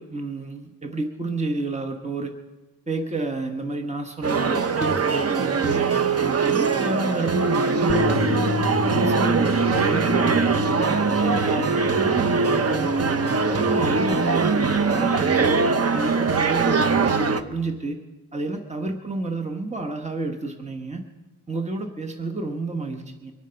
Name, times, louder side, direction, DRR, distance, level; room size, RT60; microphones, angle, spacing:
voice 1, 0.0-2.3 2.9-5.9 6.2-8.5 8.8-12.9 13.2-15.6 15.9-18.0 18.3-21.0 21.5-23.3, right 2 dB, 15° right, 4 dB, 1.2 m, -30 dB
sound 1, 4.2-17.4, right 4 dB, 40° right, 0.7 m, -22 dB
Bass guitar, 7.9-14.1, left 3 dB, 20° left, 0.6 m, -31 dB
23.5 x 9.1 x 5.7 m, 1.2 s
wide cardioid pair, 145°, 39 cm